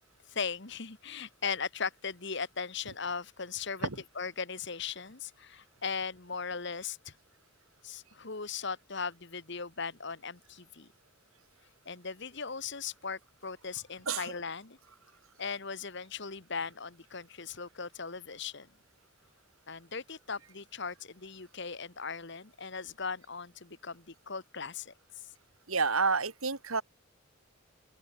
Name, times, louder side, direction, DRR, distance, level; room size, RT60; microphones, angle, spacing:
voice 1, 0.3-3.9 4.2-7.1 7.8-10.9 11.8-14.8 15.4-18.7 19.7-25.2, left 5 dB, 55° left, 1.5 m, -38 dB
voice 2, 25.7-26.8, right 4 dB, 80° right, 2.8 m, -29 dB
open air
head